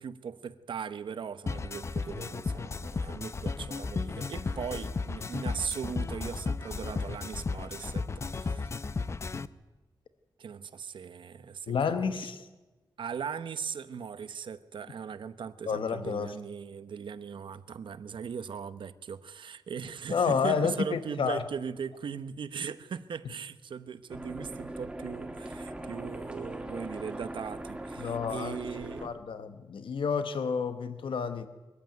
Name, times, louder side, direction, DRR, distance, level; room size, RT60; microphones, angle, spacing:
voice 1, 0.0-8.7 10.4-12.3 13.0-29.1, right 7 dB, 75° right, 1.0 m, -39 dB
sound 1, 1.5-9.5, left 4 dB, 35° left, 0.6 m, -34 dB
voice 2, 11.7-12.5 15.7-16.3 20.1-21.4 28.0-28.6 29.0-31.5, left 6 dB, 85° left, 1.1 m, -30 dB
sound 2, 24.1-29.1, right 1 dB, 10° right, 1.8 m, -40 dB
22.0 x 14.5 x 9.3 m
wide cardioid pair, 155°, 8 cm